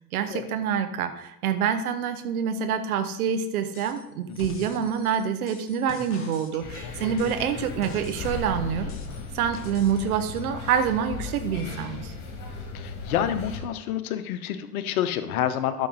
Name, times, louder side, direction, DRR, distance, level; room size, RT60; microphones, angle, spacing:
voice 1, 0.1-9.0 9.3-12.1, right 7 dB, 70° right, 8 dB, 1.1 m, -26 dB
sound 1, 3.7-4.0 4.3-8.5 8.9-10.0 10.3-10.4, left 4 dB, 30° left, 1.7 m, -45 dB
sound 2, 6.6-13.6, left 4 dB, 45° left, 2.3 m, -36 dB
voice 2, 12.7-15.9, left 10 dB, 65° left, 11 dB, 0.9 m, -28 dB
12.5 x 6.0 x 4.0 m, 0.86 s
figure-of-eight pair, 70°, 46 cm